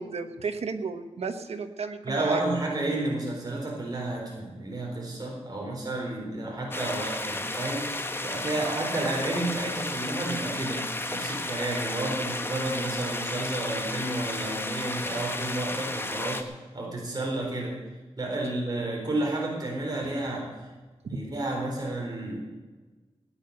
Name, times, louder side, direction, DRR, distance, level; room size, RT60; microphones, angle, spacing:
voice 1, 0.0-2.4 20.0-20.1 21.1-21.2, right 5 dB, 85° right, 8 dB, 1.3 m, -33 dB
voice 2, 2.0-16.5 16.7-17.8 18.2-20.6 21.0-22.4, right 2 dB, 40° right, -1 dB, 4.1 m, -31 dB
sound 1, 6.7-16.4, left 2 dB, 20° left, 1.3 m, -33 dB
17.0 x 10.0 x 6.7 m, 1.3 s
wide cardioid pair, 105°, 10 cm